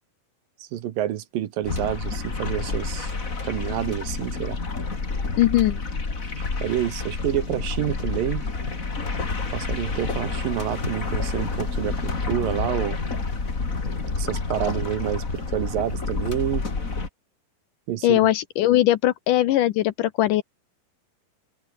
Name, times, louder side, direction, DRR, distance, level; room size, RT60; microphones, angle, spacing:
voice 1, 0.6-3.1 3.4-4.6 6.6-8.5 9.5-13.0 14.2-16.6 17.9-18.3, right 12 dB, 75° right, 3.0 m, -28 dB
sound 1, 1.6-17.1, left 4 dB, 25° left, 2.8 m, -29 dB
voice 2, 5.4-5.8 18.0-20.4, left 14 dB, 75° left, 2.2 m, -20 dB
omnidirectional pair, 4.3 m